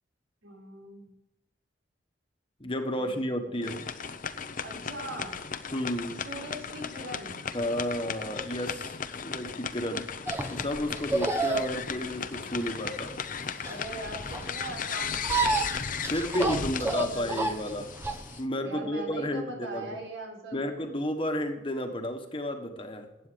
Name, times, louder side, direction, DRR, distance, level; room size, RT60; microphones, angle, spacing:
voice 1, 0.4-1.1 3.0-3.2 3.4-3.7 4.6-5.4 6.1-7.5 13.6-15.8 16.5-17.6 18.6-20.9, right 1 dB, 85° right, 0 dB, 4.4 m, -41 dB
voice 2, 2.6-3.8 5.7-6.2 7.5-10.1 10.5-13.1 16.1-17.9 18.4-19.9 20.5-23.1, equal, 25° left, 5 dB, 1.4 m, -32 dB
sound 1, 3.6-18.4, left 6 dB, 45° left, 0.8 m, -36 dB
sound 2, 10.3-18.4, right 3 dB, 10° right, 1.0 m, -31 dB
15.0 x 9.3 x 5.2 m, 0.91 s
head